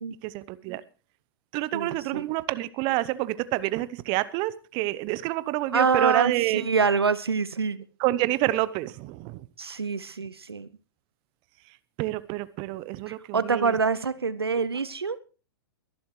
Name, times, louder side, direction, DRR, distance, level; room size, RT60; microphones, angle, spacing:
voice 1, 0.2-0.8 1.5-6.7 8.0-9.5 12.0-13.8 14.6-14.7, right 17 dB, 40° right, 17 dB, 0.9 m, -28 dB
voice 2, 1.7-2.3 5.7-7.8 9.6-10.7 13.1-15.2, right 5 dB, 85° right, 16 dB, 0.7 m, -26 dB
23.0 x 11.5 x 3.2 m, 0.35 s
figure-of-eight pair, 100°, 13 cm